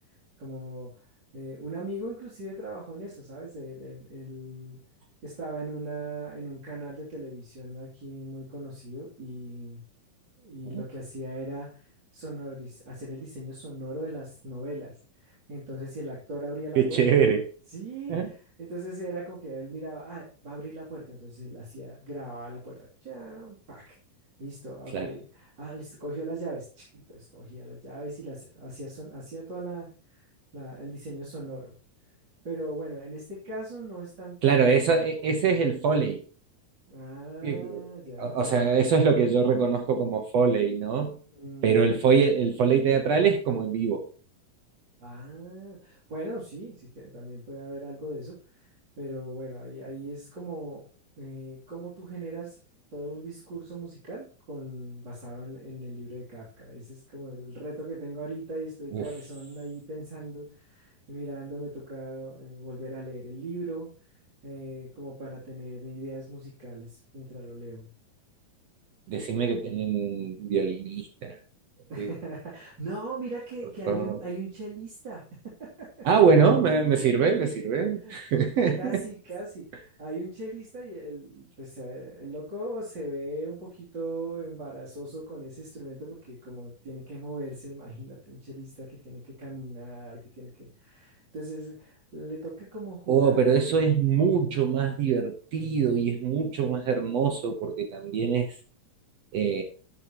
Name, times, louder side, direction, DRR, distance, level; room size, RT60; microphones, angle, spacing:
voice 1, 0.4-0.9 1.3-4.8 5.2-9.8 10.4-11.7 12.1-17.3 17.7-23.9 24.4-30.2 30.5-31.7 32.4-34.7 36.9-38.5 41.3-42.0 45.0-48.3 49.0-50.8 51.2-52.5 52.9-63.9 64.4-67.9 71.9-76.1 78.0-78.2 78.8-93.4, right 1 dB, 30° right, -7 dB, 3.4 m, -39 dB
voice 2, 16.8-17.4 18.1-18.3 24.9-25.1 34.4-36.2 37.4-37.8 38.2-41.2 41.6-44.1 58.9-59.1 69.1-71.4 72.0-72.1 73.9-74.2 76.0-79.0 93.1-98.5 99.3-99.6, right 6 dB, 70° right, 5 dB, 1.6 m, -23 dB
13.0 x 9.5 x 3.0 m, 0.39 s
omnidirectional pair, 4.1 m